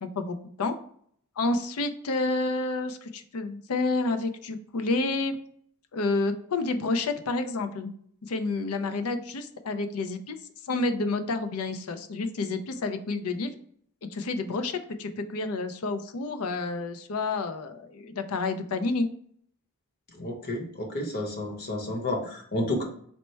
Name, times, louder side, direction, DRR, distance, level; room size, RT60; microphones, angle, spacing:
voice 1, 0.0-0.8 1.4-5.4 5.9-7.9 8.2-10.4 10.6-13.5 14.1-19.1, left 3 dB, 70° left, 8 dB, 0.5 m, -29 dB
voice 2, 20.2-22.8, left 1 dB, 45° left, 1 dB, 0.9 m, -31 dB
4.3 x 2.1 x 4.3 m, 0.63 s
head